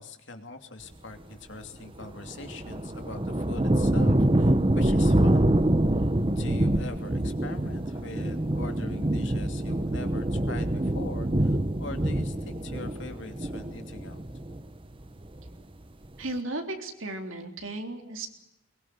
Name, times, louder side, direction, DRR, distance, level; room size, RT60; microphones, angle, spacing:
voice 1, 0.0-5.5 6.0-6.1 6.4-14.2, left 2 dB, 60° left, 7 dB, 2.8 m, -42 dB
sound 1, 1.9-14.7 15.1-15.7, right 1 dB, 25° right, 0.9 m, -26 dB
voice 2, 16.2-18.3, right 2 dB, 70° right, 4 dB, 3.7 m, -35 dB
22.5 x 21.0 x 9.6 m, 0.85 s
head